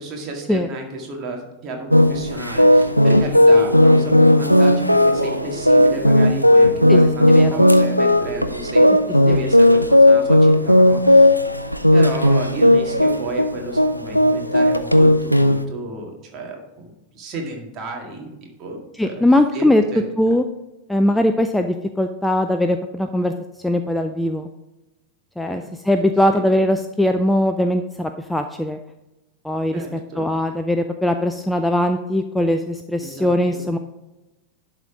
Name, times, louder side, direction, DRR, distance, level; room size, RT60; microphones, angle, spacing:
voice 1, 0.0-8.8 9.1-11.4 11.9-18.3 18.6-18.8 19.0-19.3 19.5-20.1 25.5-25.7 26.3-26.4 29.7-30.3 33.0-33.7, right 2 dB, 30° right, 1 dB, 2.0 m, -32 dB
sound 1, 1.9-15.6, left 1 dB, 90° left, 0.4 m, -14 dB
sound 2, 2.9-10.8, left 3 dB, 70° left, 1.4 m, -36 dB
voice 2, 7.3-7.6 9.3-9.4 19.0-19.8 20.2-20.4 20.9-23.3 23.6-24.5 25.4-28.8 29.4-33.8, left 1 dB, 5° left, 7 dB, 0.4 m, -20 dB
11.0 x 4.1 x 4.8 m, 1.0 s
figure-of-eight pair, 90°, 0 cm